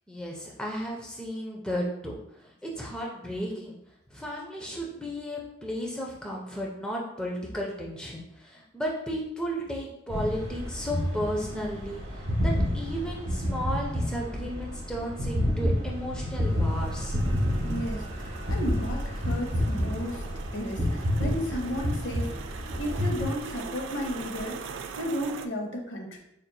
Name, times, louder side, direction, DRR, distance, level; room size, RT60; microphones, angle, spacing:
voice 1, 0.1-2.1 2.4-3.8 4.1-17.2, equal, 5° left, -2 dB, 0.5 m, -34 dB
sound 1, 10.1-23.3, equal, 65° right, 1.1 m, -29 dB
sound 2, 16.8-25.5, right 3 dB, 80° right, 0.3 m, -39 dB
voice 2, 17.6-20.2 20.5-22.3 22.8-24.6 25.0-26.2, equal, 85° left, 2 dB, 0.8 m, -33 dB
4.9 x 2.9 x 2.2 m, 0.80 s
head